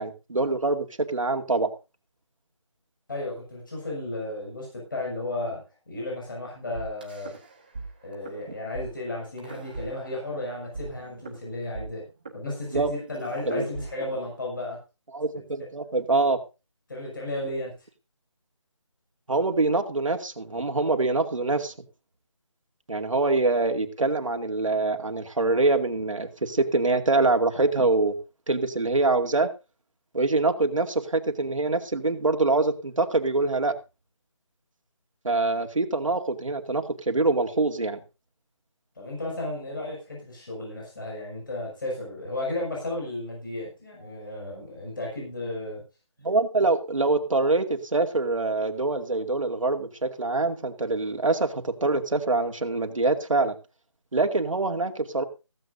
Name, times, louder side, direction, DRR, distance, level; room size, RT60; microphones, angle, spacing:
voice 1, 0.0-1.7 8.5-8.6 12.5-12.9 13.5-13.6 15.1-16.4 19.3-21.7 22.9-28.2 28.5-29.5 30.1-33.7 35.2-38.0 46.2-53.6 54.1-55.2, right 3 dB, 80° right, 4 dB, 2.4 m, -24 dB
voice 2, 3.1-5.6 5.9-7.4 8.0-12.0 12.3-14.8 16.9-17.7 39.0-45.8, left 2 dB, 40° left, -3 dB, 6.0 m, -34 dB
sound 1, 6.8-7.9 8.1-8.4 8.7-8.9 9.4-10.4 10.7-14.8, right 3 dB, 15° right, 1.4 m, -40 dB
15.5 x 15.5 x 2.7 m, 0.29 s
figure-of-eight pair, 180°, 16 cm